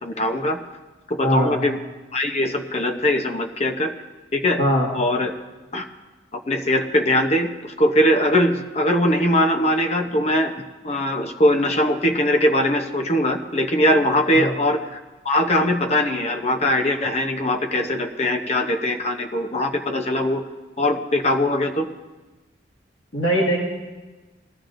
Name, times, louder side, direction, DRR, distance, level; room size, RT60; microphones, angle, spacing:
voice 1, 0.0-0.6 1.1-1.8 2.1-3.9 4.3-4.6 4.9-5.3 5.7-5.9 6.3-10.5 10.8-14.8 15.2-20.4 20.8-21.9, left 1 dB, 35° left, 5 dB, 0.8 m, -21 dB
voice 2, 1.2-1.6 4.6-4.9 14.3-14.5 23.1-23.6, equal, 70° left, -6 dB, 1.9 m, -20 dB
20.0 x 12.5 x 2.6 m, 1.2 s
head